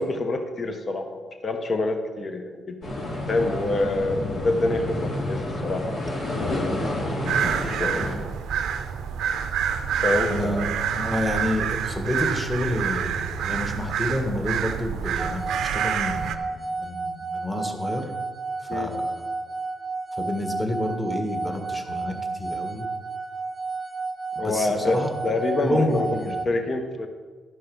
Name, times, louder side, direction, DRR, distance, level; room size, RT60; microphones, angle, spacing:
voice 1, 0.0-2.8 3.3-6.1 6.4-7.1 7.6-8.1 10.0-10.8 18.7-18.9 24.4-27.1, left 2 dB, 45° left, 6 dB, 1.1 m, -27 dB
sound 1, 2.8-8.1, left 1 dB, 65° left, 2.8 m, -29 dB
sound 2, 7.3-16.4, right 8 dB, 80° right, 0.6 m, -27 dB
voice 2, 10.3-10.7 10.9-18.1 18.7-19.3 20.1-22.9 24.3-25.3 25.6-26.3, left 1 dB, 15° left, 3 dB, 1.6 m, -29 dB
sound 3, 15.2-26.5, right 3 dB, 25° right, 0.6 m, -32 dB
12.5 x 5.5 x 5.4 m, 1.4 s
cardioid pair, 90°, 0 cm